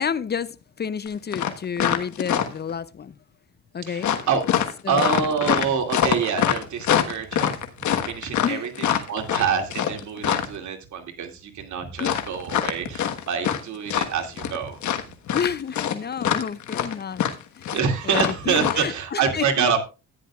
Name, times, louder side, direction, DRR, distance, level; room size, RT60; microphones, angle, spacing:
voice 1, 0.0-3.1 3.7-4.1 4.8-5.3 8.4-8.6 12.0-12.2 15.3-17.2 17.6-17.7 18.0-19.7, left 7 dB, 35° left, 0.5 m, -30 dB
sound 1, 1.1-1.2 1.3-2.7 4.0-10.6 12.0-13.6 13.9-14.6 14.8-18.7, left 9 dB, 70° left, 1.4 m, -24 dB
voice 2, 3.9-4.4 4.9-7.6 8.0-14.8 17.7-19.8, right 6 dB, 70° right, 2.4 m, -26 dB
14.0 x 10.0 x 2.4 m
cardioid pair, 90°, 30 cm